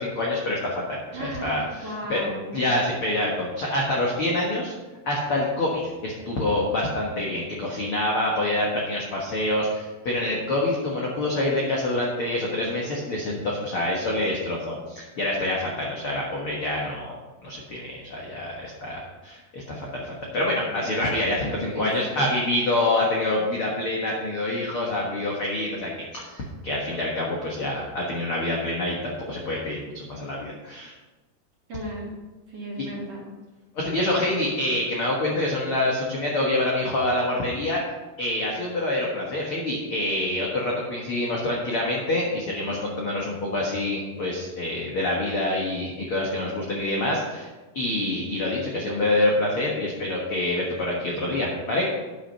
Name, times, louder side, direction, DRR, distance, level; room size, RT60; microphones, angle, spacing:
voice 1, 0.0-2.2 2.5-4.7 5.0-30.9 33.7-37.8 38.2-47.5 47.7-51.9, left 1 dB, 55° left, -3 dB, 1.5 m, -26 dB
voice 2, 1.1-2.6 21.7-22.2 31.7-32.1 32.5-33.2, right 1 dB, 45° right, -5 dB, 3.2 m, -35 dB
10.0 x 6.4 x 5.5 m, 1.2 s
omnidirectional pair, 4.6 m